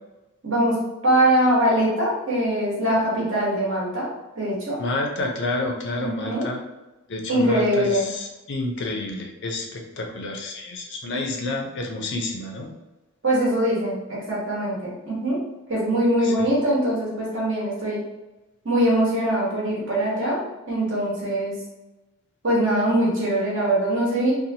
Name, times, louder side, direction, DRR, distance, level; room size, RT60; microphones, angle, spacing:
voice 1, 0.4-0.8 1.0-4.1 4.3-4.8 6.0-6.5 7.3-8.1 13.2-15.4 15.7-18.0 18.6-21.5 22.4-24.3, right 1 dB, 55° right, -5 dB, 1.1 m, -22 dB
voice 2, 4.8-6.6 7.1-12.7 16.2-16.3, left 2 dB, 55° left, 2 dB, 0.5 m, -29 dB
2.7 x 2.4 x 2.7 m, 1.1 s
head